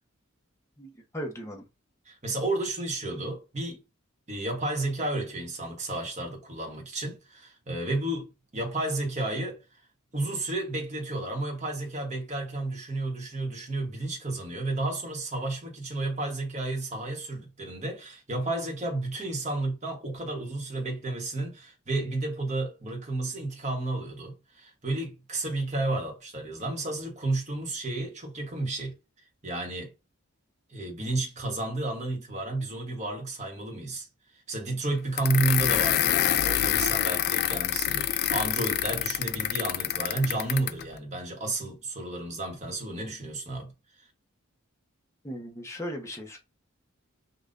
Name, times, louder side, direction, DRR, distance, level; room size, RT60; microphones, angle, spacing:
voice 1, 0.8-1.7 45.2-46.4, equal, 15° left, 1.0 m, -37 dB
voice 2, 2.1-3.8 4.3-9.6 10.1-28.9 29.4-29.9 30.7-34.1 34.5-43.7, right 2 dB, 35° right, 1.3 m, -32 dB
sound 1, 35.2-40.8, left 11 dB, 50° left, 0.3 m, -26 dB
5.4 x 2.6 x 2.6 m
head